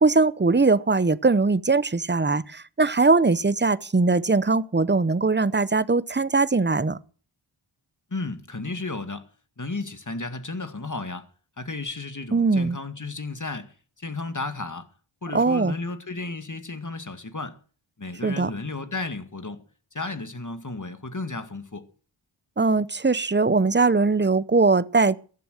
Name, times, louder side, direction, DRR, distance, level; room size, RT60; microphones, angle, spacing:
voice 1, 0.0-7.0 12.3-12.8 15.3-15.8 18.2-18.5 22.6-25.2, right 3 dB, 20° right, 0.7 m, -21 dB
voice 2, 8.1-9.3 9.6-11.3 11.6-14.9 15.2-17.6 18.0-19.6 19.9-21.9, left 3 dB, 40° left, 2.0 m, -33 dB
14.5 x 11.5 x 6.4 m
wide cardioid pair, 40°, 49 cm